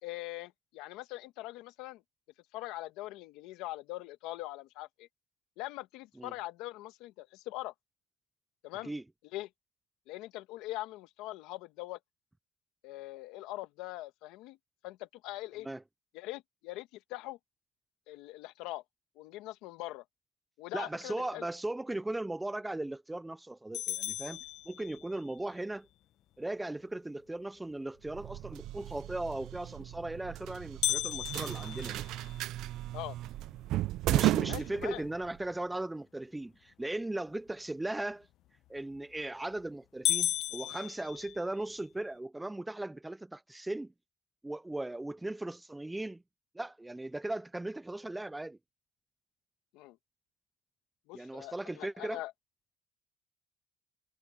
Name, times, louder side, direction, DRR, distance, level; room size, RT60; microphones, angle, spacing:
voice 1, 0.0-2.0 2.5-5.1 5.6-7.7 8.6-8.9 9.3-9.5 10.1-12.0 12.8-14.6 14.8-15.7 16.1-17.4 18.1-18.8 19.2-20.0 20.6-21.5 32.9-33.2 34.5-35.0 49.7-50.0 51.1-52.3, left 17 dB, 90° left, 1.5 m, -42 dB
voice 2, 20.7-25.9 26.4-32.0 34.1-38.3 38.7-43.9 44.4-46.2 46.5-48.6 51.1-52.2, right 2 dB, 10° right, 0.4 m, -38 dB
sound 1, 23.7-25.3 30.8-33.0 33.5-33.6 34.1-34.2 34.8-35.2 38.8-39.2 39.6-39.7 40.1-41.8, left 13 dB, 55° left, 0.8 m, -35 dB
sound 2, 28.1-35.4, right 15 dB, 65° right, 0.4 m, -34 dB
cardioid pair, 145°, 0 cm